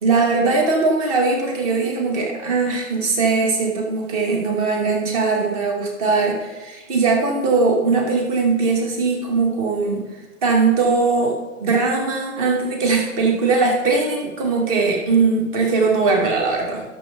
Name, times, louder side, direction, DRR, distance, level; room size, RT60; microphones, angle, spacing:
voice 1, 0.0-10.0 10.4-16.8, right 4 dB, 25° right, 1 dB, 2.3 m, -20 dB
16.0 x 7.0 x 3.7 m, 1.1 s
figure-of-eight pair, 130°, 40 cm